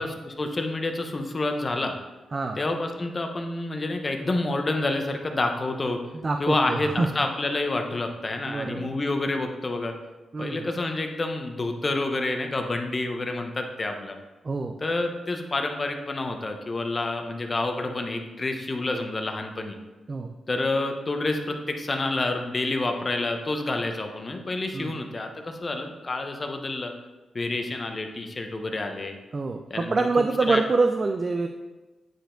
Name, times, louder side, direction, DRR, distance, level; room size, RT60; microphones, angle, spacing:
voice 1, 0.0-1.9 2.6-6.0 6.4-9.9 10.4-14.2 14.8-19.8 20.5-26.9 27.3-29.1 29.7-29.9 30.5-30.6, left 2 dB, 35° left, 4 dB, 0.9 m, -28 dB
voice 2, 6.1-7.1 8.5-9.0 10.3-10.7 14.4-14.7 20.1-20.3 24.7-25.0 29.3-31.5, right 3 dB, 40° right, 5 dB, 0.5 m, -26 dB
9.2 x 4.6 x 3.8 m, 1.2 s
cardioid pair, 75°, 0 cm